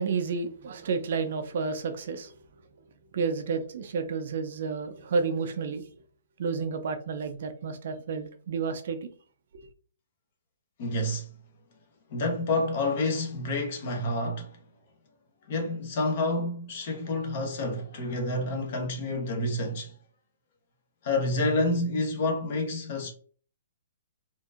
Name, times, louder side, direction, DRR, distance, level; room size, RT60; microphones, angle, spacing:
voice 1, 0.0-2.3 3.1-5.9 6.4-9.1, right 5 dB, 45° right, 0.5 m, -31 dB
voice 2, 10.8-11.3 12.1-14.6 15.5-19.9 21.0-23.1, left 2 dB, 35° left, 0.9 m, -29 dB
4.3 x 2.6 x 2.4 m
hypercardioid pair, 175°, 0 cm